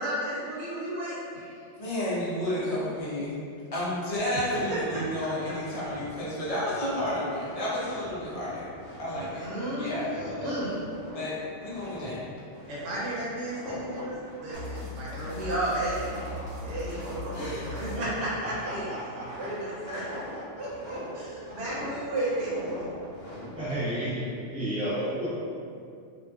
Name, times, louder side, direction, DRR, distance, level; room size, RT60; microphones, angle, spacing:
voice 1, 0.0-1.5 4.3-4.4 4.7-4.8 9.3-10.7 12.7-16.1 16.6-17.5 17.8-18.1 18.4-18.8 19.4-20.0 20.6-22.5, right 1 dB, 65° right, -8 dB, 0.9 m, -33 dB
voice 2, 1.8-3.4 3.7-8.7 9.0-9.5 9.8-10.5 11.1-12.2 15.1-15.2 16.2-16.5 17.3-17.6, left 1 dB, 45° left, -8 dB, 0.5 m, -31 dB
sound 1, 4.3-24.0, left 1 dB, 80° left, 1.0 m, -43 dB
sound 2, 14.5-18.8, left 2 dB, 90° right, 1.1 m, -40 dB
voice 3, 17.9-19.9 20.3-20.4 23.5-25.3, right 1 dB, 15° right, -17 dB, 0.6 m, -33 dB
2.3 x 2.3 x 2.3 m, 2.4 s
omnidirectional pair, 1.3 m